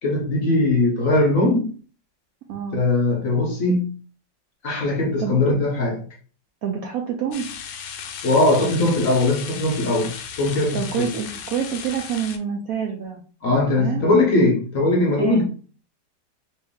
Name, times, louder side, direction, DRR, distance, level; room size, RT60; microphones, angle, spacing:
voice 1, 0.0-1.7 2.7-3.9 4.6-6.0 8.2-11.1 13.4-15.4, left 2 dB, 60° left, 0.9 m, -20 dB
voice 2, 2.5-2.8 5.2-5.4 6.6-7.5 10.7-13.2 13.8-14.1 15.2-15.4, right 8 dB, 75° right, 0.8 m, -27 dB
sound 1, 7.3-12.4, left 7 dB, 75° left, 1.2 m, -36 dB
3.2 x 2.8 x 3.5 m
omnidirectional pair, 2.0 m